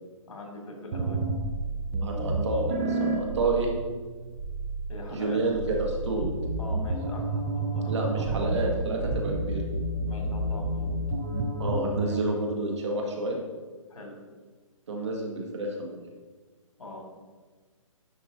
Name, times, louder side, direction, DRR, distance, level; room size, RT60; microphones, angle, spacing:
voice 1, 0.3-1.2 4.9-5.4 6.6-8.7 10.1-10.9 13.9-14.1 16.8-17.1, left 2 dB, 75° left, 1 dB, 2.2 m, -42 dB
sound 1, 0.9-12.2, right 2 dB, 20° right, 0.6 m, -30 dB
voice 2, 2.0-3.7 5.1-6.3 7.9-9.6 11.6-13.4 14.9-15.9, right 2 dB, 55° right, 0 dB, 1.7 m, -29 dB
10.5 x 5.4 x 2.6 m, 1.4 s
hypercardioid pair, 160°, 17 cm